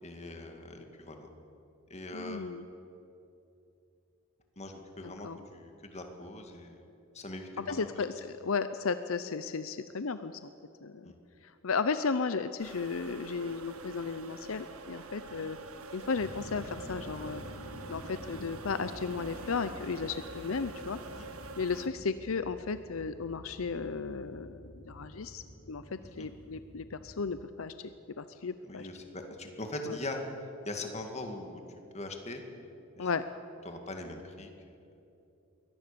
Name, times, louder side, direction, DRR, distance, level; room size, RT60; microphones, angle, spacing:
voice 1, 0.0-1.3 1.9-2.4 4.6-8.0 11.0-11.2 15.4-15.5 21.0-21.3 26.0-26.3 28.6-30.2 30.6-31.6 31.9-32.4 33.0-33.1 33.6-34.7, left 2 dB, 30° left, 4 dB, 2.3 m, -41 dB
voice 2, 2.1-2.6 5.2-5.4 7.6-10.4 10.8-11.1 11.6-15.6 15.9-17.4 17.9-21.0 21.6-27.7 28.2-28.9 33.0-33.2, left 5 dB, 75° left, 12 dB, 0.7 m, -34 dB
sound 1, 12.6-21.9, right 3 dB, 85° right, 1.6 m, -46 dB
sound 2, 16.1-27.3, equal, 90° left, 3.9 m, -49 dB
23.5 x 18.0 x 7.0 m, 2.8 s
head